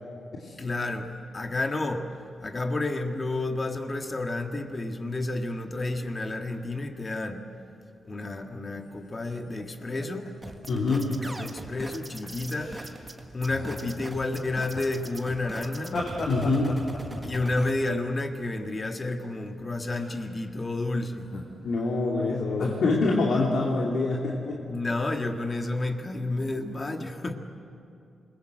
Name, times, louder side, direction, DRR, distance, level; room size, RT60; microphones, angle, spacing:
voice 1, 0.6-1.1 1.3-2.1 2.4-7.4 8.0-10.3 11.1-12.7 13.3-16.0 17.2-21.3 24.7-27.3, left 2 dB, 30° left, 4 dB, 1.8 m, -30 dB
sound 1, 8.7-11.4 11.7-12.0 12.2-13.1 13.5-14.1 14.7-19.0 19.9-20.4 21.2-21.9 22.6-22.7, left 2 dB, 60° left, 6.2 m, -39 dB
sound 2, 10.4-17.7, right 1 dB, 15° right, 1.7 m, -40 dB
voice 2, 10.7-11.1 16.3-16.8 21.6-24.6, left 3 dB, 75° left, -3 dB, 2.8 m, -25 dB
28.0 x 21.5 x 7.8 m, 2.5 s
wide cardioid pair, 130°, 0 cm